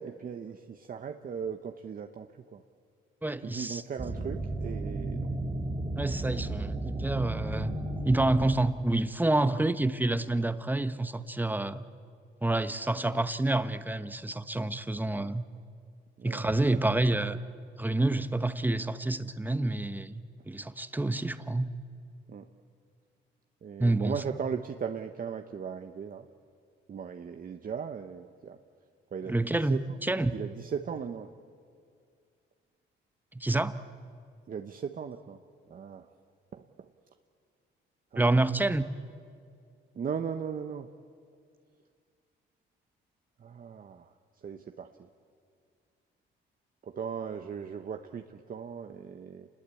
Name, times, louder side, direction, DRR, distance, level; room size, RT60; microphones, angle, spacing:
voice 1, 0.0-2.6 3.4-5.3 9.4-9.5 16.2-16.6 17.3-17.4 22.3-22.5 23.6-26.3 26.9-28.6 29.1-29.8 30.3-31.3 34.5-35.4 35.7-36.1 36.5-36.9 38.1-38.6 39.9-40.9 43.4-44.1 44.4-44.9 46.8-49.5, right 7 dB, 45° right, 6 dB, 1.1 m, -38 dB
voice 2, 3.2-3.8 6.0-7.7 8.0-11.8 12.4-15.4 16.2-17.4 17.8-21.7 23.8-24.2 29.3-30.3 33.3-33.7 38.2-38.8, right 2 dB, 10° right, 11 dB, 1.1 m, -28 dB
sound 1, 4.0-9.0, right 2 dB, 25° right, 2.9 m, -34 dB
28.5 x 21.0 x 8.5 m, 2.2 s
cardioid pair, 90°, 20 cm